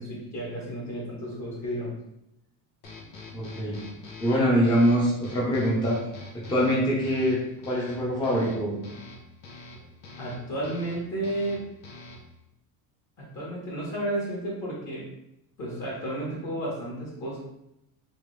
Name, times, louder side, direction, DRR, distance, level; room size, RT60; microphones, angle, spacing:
voice 1, 0.0-2.0 10.2-11.6 13.2-15.1 15.6-17.4, right 1 dB, 35° left, -5 dB, 1.4 m, -32 dB
sound 1, 2.8-12.4, left 2 dB, 90° left, 1.3 m, -45 dB
voice 2, 3.3-3.8 4.2-6.0 6.5-7.4 7.6-8.8, equal, 10° left, -5 dB, 0.7 m, -24 dB
3.6 x 3.5 x 3.3 m, 0.84 s
cardioid pair, 155°, 46 cm